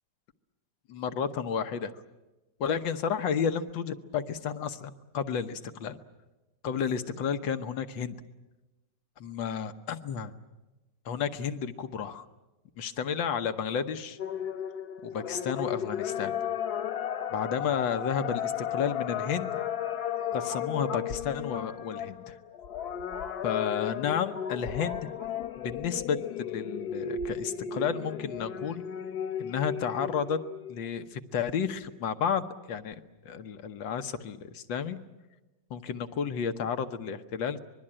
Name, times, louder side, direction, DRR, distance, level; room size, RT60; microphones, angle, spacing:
voice 1, 0.9-1.9 2.6-6.0 6.6-8.2 9.2-10.3 11.1-12.3 12.8-14.2 15.0-16.3 17.3-19.6 20.3-22.4 23.4-25.1 25.6-28.8 29.4-30.4 30.7-33.0 33.3-35.0 35.7-37.6, left 7 dB, 90° left, 9 dB, 1.8 m, -32 dB
sound 1, 14.2-30.8, left 8 dB, 60° left, 1.5 m, -34 dB
25.0 x 21.5 x 8.8 m, 1.1 s
omnidirectional pair, 2.0 m